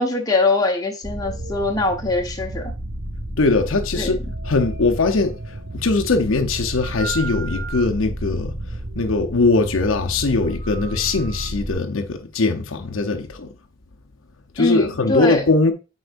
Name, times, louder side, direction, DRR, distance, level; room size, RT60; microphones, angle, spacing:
voice 1, 0.0-2.7 3.9-4.2 14.6-15.4, left 2 dB, 20° left, 1.0 m, -22 dB
sound 1, 1.0-11.7, right 1 dB, 60° right, 2.0 m, -31 dB
voice 2, 3.4-4.2 4.4-5.4 5.7-8.5 9.0-13.5 14.6-15.7, left 3 dB, 75° left, 0.8 m, -20 dB
7.9 x 4.7 x 2.5 m
head